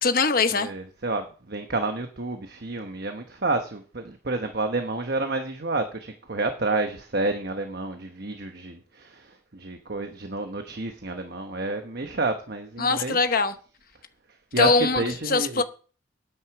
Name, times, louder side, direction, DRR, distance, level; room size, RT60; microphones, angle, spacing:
voice 1, 0.0-0.7 12.8-13.5 14.6-15.6, left 4 dB, 45° left, 0.9 m, -22 dB
voice 2, 0.5-13.2 14.5-15.6, right 2 dB, 50° right, 1.1 m, -29 dB
9.5 x 7.9 x 7.1 m
head